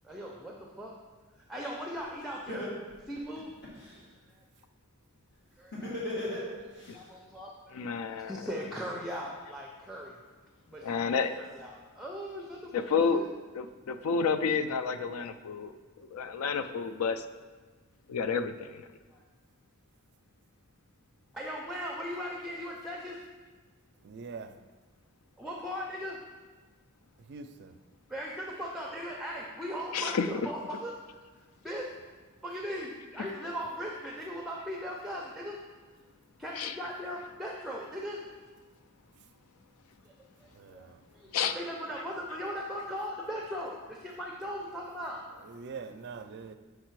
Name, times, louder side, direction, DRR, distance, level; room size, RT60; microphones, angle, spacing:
voice 1, 0.0-0.9 1.5-2.7 3.0-3.5 5.6-6.0 6.8-10.1 10.7-13.2 19.1-19.2 21.3-23.2 25.4-26.2 28.1-30.9 31.6-31.8 32.4-35.6 36.4-38.3 40.4-45.2, equal, ahead, 0.5 m, -39 dB
Laughter, 2.0-2.1 2.5-3.9 5.7-6.9, left 1 dB, 55° left, 2.2 m, -36 dB
voice 2, 7.7-8.5 10.8-11.3 12.7-13.2 13.5-15.7 16.1-17.2 18.1-18.7 29.9-30.5 36.5-36.8 41.3-41.5, left 5 dB, 80° left, 0.4 m, -30 dB
voice 3, 24.0-24.6 27.2-27.8 40.5-41.0 45.4-46.5, right 5 dB, 50° right, 0.4 m, -44 dB
6.6 x 4.8 x 4.6 m
head